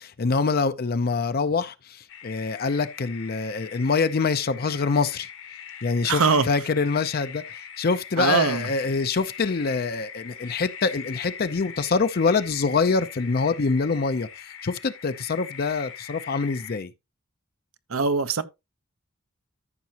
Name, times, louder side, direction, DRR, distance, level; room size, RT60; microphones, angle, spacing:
voice 1, 0.0-1.7 2.2-5.3 5.8-6.2 6.5-14.3 14.6-16.9, left 4 dB, 45° left, 0.5 m, -25 dB
sound 1, 2.1-16.8, left 7 dB, 65° left, 1.4 m, -41 dB
voice 2, 6.0-6.5 8.2-8.7 17.9-18.4, right 5 dB, 80° right, 0.8 m, -22 dB
13.5 x 5.9 x 2.9 m
head